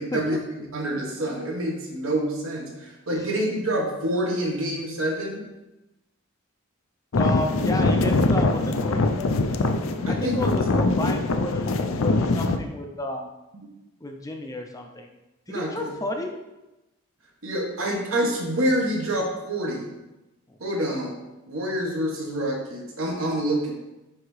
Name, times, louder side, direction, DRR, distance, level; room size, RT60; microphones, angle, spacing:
voice 1, 0.0-5.4 10.0-10.6 15.5-15.9 17.4-19.9 20.6-21.1 21.5-23.7, right 1 dB, 75° right, -1 dB, 1.3 m, -27 dB
sound 1, 7.1-12.6, left 2 dB, 70° left, 0.5 m, -23 dB
voice 2, 7.2-9.2 10.1-13.3 14.0-15.1 15.5-16.4 20.5-21.0, left 1 dB, 15° left, 3 dB, 0.5 m, -32 dB
9.4 x 3.5 x 3.2 m, 1.0 s
head